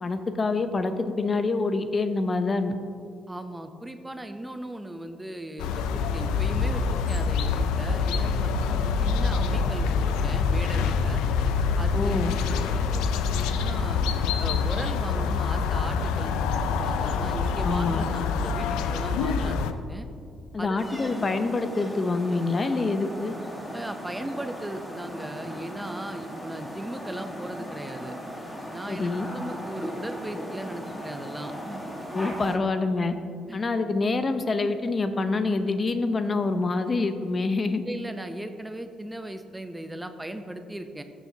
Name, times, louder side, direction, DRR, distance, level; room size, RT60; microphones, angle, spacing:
voice 1, 0.0-2.8 11.9-12.4 17.6-18.0 20.5-23.3 28.9-29.3 32.1-33.1 33.5-37.8, left 3 dB, 35° left, 9 dB, 0.6 m, -26 dB
voice 2, 3.3-11.2 11.8-12.2 12.5-14.0 14.4-20.1 20.6-20.8 23.7-28.2 28.7-31.8 33.5-33.6 37.8-41.0, right 1 dB, 10° right, 8 dB, 0.6 m, -38 dB
sound 1, 5.6-19.7, left 5 dB, 90° left, 0.4 m, -26 dB
sound 2, 20.8-32.6, equal, 10° left, 1.6 m, -38 dB
14.5 x 7.1 x 2.8 m, 2.4 s
supercardioid pair, 75°, 0 cm